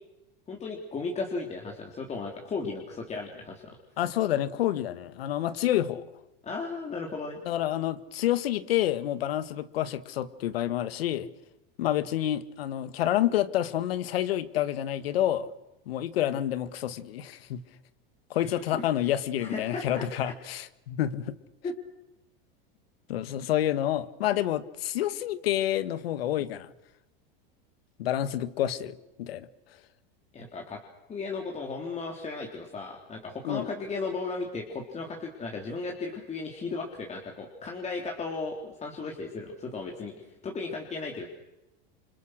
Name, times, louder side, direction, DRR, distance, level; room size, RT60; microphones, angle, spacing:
voice 1, 0.5-3.8 6.4-7.4 18.4-18.8 19.4-20.3 21.6-21.7 30.3-30.8 31.1-41.3, left 4 dB, 25° left, 1 dB, 3.6 m, -35 dB
voice 2, 4.0-6.0 7.5-11.3 11.8-15.5 15.9-17.6 18.3-21.4 23.1-26.7 28.0-29.5 33.4-33.7, left 12 dB, 90° left, 14 dB, 1.8 m, -28 dB
28.0 x 25.5 x 6.5 m, 0.95 s
supercardioid pair, 130°, 29 cm